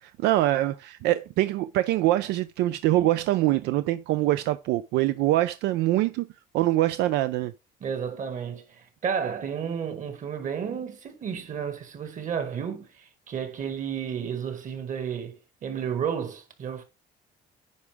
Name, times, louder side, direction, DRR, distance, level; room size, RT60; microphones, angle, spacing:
voice 1, 0.0-6.3 6.5-7.5, right 15 dB, 90° right, 0.5 m, -24 dB
voice 2, 7.8-16.8, right 7 dB, 50° right, 2.0 m, -32 dB
9.5 x 4.9 x 3.5 m
cardioid pair, 110°, 17 cm